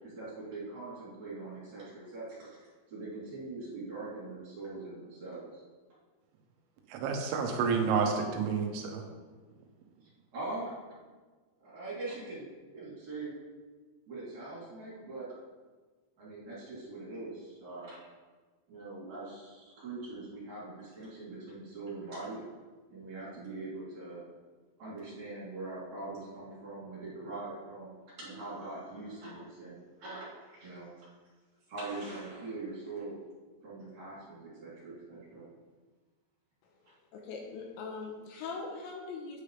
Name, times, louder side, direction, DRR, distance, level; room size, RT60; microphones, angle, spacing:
voice 1, 0.0-5.6 10.0-10.8 11.6-13.3 14.1-15.4 16.2-18.0 18.7-22.4 22.9-24.2 24.8-27.9 28.2-31.1 31.7-33.1 33.6-35.5, right 2 dB, 40° right, -9 dB, 4.2 m, -42 dB
voice 2, 6.9-9.0, right 5 dB, 80° right, 3 dB, 3.5 m, -29 dB
voice 3, 37.1-39.4, left 4 dB, 75° left, 1 dB, 3.0 m, -41 dB
10.0 x 9.8 x 3.4 m, 1.4 s
omnidirectional pair, 5.7 m